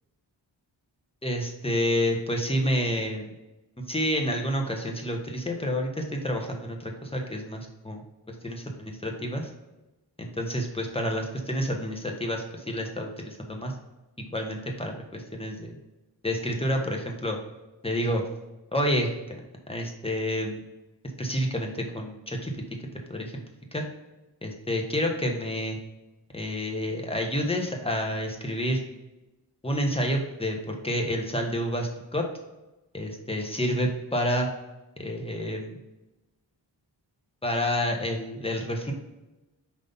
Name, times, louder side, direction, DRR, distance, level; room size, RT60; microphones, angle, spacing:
voice 1, 1.2-3.3 3.9-8.0 8.4-9.5 10.2-13.7 14.3-15.8 16.2-17.4 17.8-18.2 18.7-19.4 19.7-20.6 21.2-22.5 23.1-23.4 23.7-23.8 24.4-25.8 26.3-28.8 29.6-32.3 32.9-34.5 35.0-35.8 37.4-38.9, equal, 10° left, 2 dB, 1.4 m, -29 dB
5.1 x 4.1 x 5.5 m, 1.0 s
cardioid pair, 55°, 45 cm